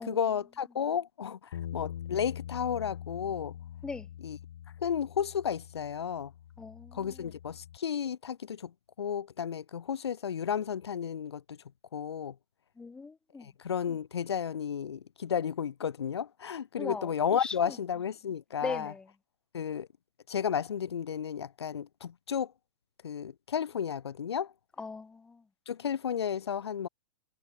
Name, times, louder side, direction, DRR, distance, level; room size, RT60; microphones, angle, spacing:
voice 1, 0.0-1.4 1.7-3.5 4.2-4.4 4.8-6.3 6.9-8.7 9.0-11.6 11.9-12.3 13.4-18.9 19.5-19.9 20.3-22.5 23.0-24.5 25.7-26.9, left 8 dB, 90° left, 7.7 m, -33 dB
sound 1, 1.5-7.8, left 11 dB, 55° left, 3.7 m, -44 dB
voice 2, 6.6-7.3 12.8-13.5 16.8-17.1 17.4-17.8 18.6-19.1 24.8-25.4, left 4 dB, 5° left, 3.0 m, -39 dB
hypercardioid pair, 170°, 13 cm